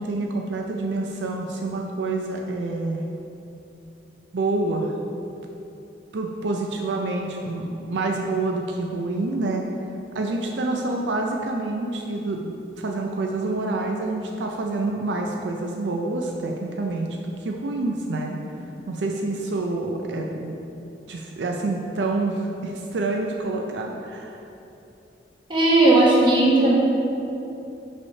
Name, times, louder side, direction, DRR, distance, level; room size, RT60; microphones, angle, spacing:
voice 1, 0.0-3.0 4.3-4.9 6.1-9.6 10.1-18.4 18.9-20.6 21.1-24.4, right 2 dB, 80° right, 1 dB, 0.4 m, -27 dB
voice 2, 25.5-26.7, right 2 dB, 25° right, -6 dB, 1.1 m, -16 dB
5.4 x 3.3 x 5.3 m, 2.9 s
head